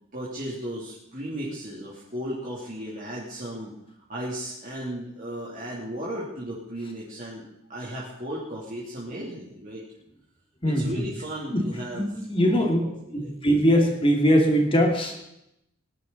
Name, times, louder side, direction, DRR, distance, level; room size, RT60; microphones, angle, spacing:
voice 1, 0.1-3.7 4.1-9.8 10.6-12.2 12.5-13.3, equal, 40° right, -6 dB, 3.1 m, -35 dB
voice 2, 10.6-11.0 11.5-11.6 11.9-12.8 13.1-15.2, equal, 25° left, 2 dB, 2.5 m, -21 dB
20.5 x 11.0 x 4.1 m, 0.80 s
head